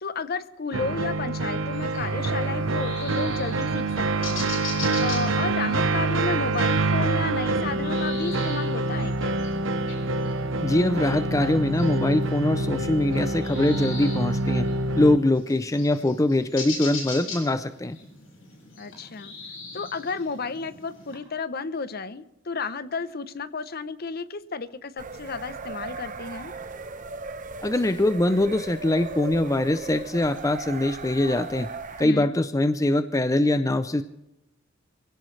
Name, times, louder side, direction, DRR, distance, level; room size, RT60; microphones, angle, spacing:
voice 1, 0.0-9.5 18.8-19.3 19.7-26.5 32.0-32.3, left 4 dB, 50° left, 14 dB, 0.8 m, -32 dB
sound 1, 0.7-15.2, right 2 dB, 75° right, 0.9 m, -26 dB
sound 2, 1.7-21.2, left 4 dB, 80° left, 6.2 m, -41 dB
voice 2, 10.6-14.7 15.0-18.0 27.6-31.7 32.0-34.0, left 1 dB, 15° left, 12 dB, 0.5 m, -23 dB
sound 3, 25.0-32.0, right 3 dB, 40° right, 0.9 m, -37 dB
24.5 x 17.0 x 3.3 m, 0.91 s
head